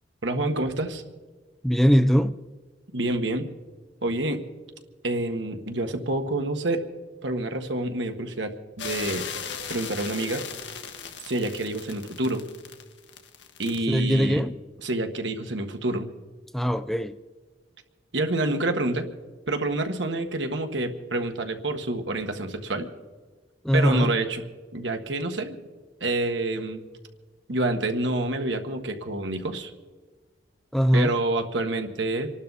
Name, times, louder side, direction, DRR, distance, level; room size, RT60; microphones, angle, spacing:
voice 1, 0.2-1.0 2.9-3.5 4.0-4.4 5.0-6.8 7.2-9.3 9.7-10.4 11.2-12.5 13.6-14.4 14.8-16.1 18.1-19.1 19.5-22.9 23.7-25.6 26.0-26.8 27.5-29.7 30.9-32.3, right 2 dB, 85° right, 1.5 m, -28 dB
voice 2, 1.6-2.3 13.9-14.6 16.5-17.2 23.6-24.1 30.7-31.2, equal, ahead, 0.4 m, -21 dB
sound 1, 8.8-13.8, left 7 dB, 75° left, 1.3 m, -37 dB
27.5 x 12.0 x 4.1 m
head